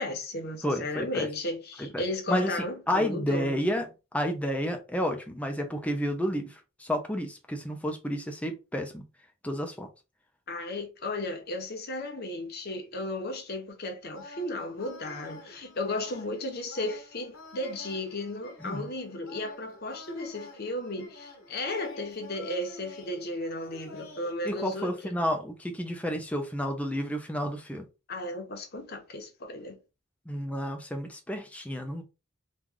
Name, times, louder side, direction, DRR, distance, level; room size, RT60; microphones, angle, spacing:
voice 1, 0.0-3.6 10.5-24.9 28.1-29.8, left 2 dB, 50° left, 0.9 m, -35 dB
voice 2, 0.6-1.3 1.8-2.0 2.3-2.6 2.9-3.9 4.1-9.0 9.4-9.9 18.6-18.9 24.4-27.9 30.3-32.0, equal, 5° left, 0.5 m, -31 dB
sound 1, 14.1-24.3, left 2 dB, 85° left, 1.1 m, -48 dB
3.0 x 2.4 x 3.7 m
head